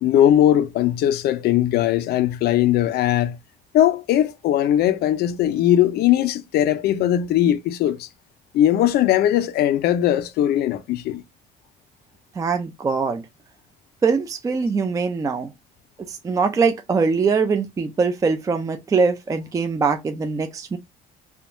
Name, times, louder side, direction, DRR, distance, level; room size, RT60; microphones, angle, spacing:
voice 1, 0.0-3.4 3.7-8.1 8.5-11.2, left 11 dB, 70° left, 0.4 m, -19 dB
voice 2, 12.4-13.2 14.0-15.5 16.1-20.8, right 4 dB, 20° right, 0.4 m, -22 dB
3.5 x 2.2 x 2.5 m
cardioid pair, 110°, 17 cm